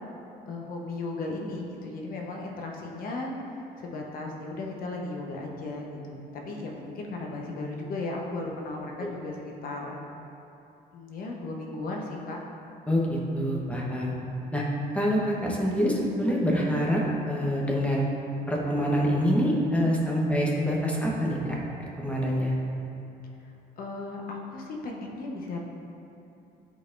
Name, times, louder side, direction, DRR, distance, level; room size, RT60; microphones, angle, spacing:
voice 1, 0.5-10.0 10.9-12.4 23.4-25.6, left 2 dB, 60° left, 0 dB, 1.0 m, -36 dB
voice 2, 12.9-14.1 14.5-14.6 14.9-18.0 18.5-22.5, equal, 10° left, -3 dB, 1.0 m, -26 dB
10.0 x 4.0 x 2.6 m, 2.8 s
cardioid pair, 110°, 17 cm